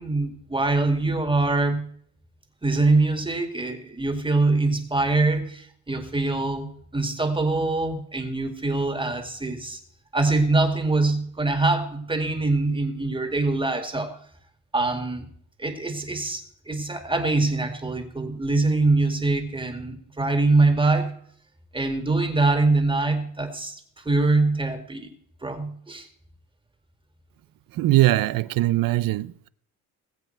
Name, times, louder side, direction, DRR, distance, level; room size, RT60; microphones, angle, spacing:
voice 1, 0.0-1.9 2.6-9.8 10.1-14.1 14.7-15.3 15.6-21.1 21.7-25.1 25.4-26.1, right 3 dB, 15° right, 2.1 m, -24 dB
voice 2, 27.7-29.5, right 16 dB, 70° right, 0.6 m, -21 dB
20.0 x 8.0 x 4.5 m
cardioid pair, 120°, 35 cm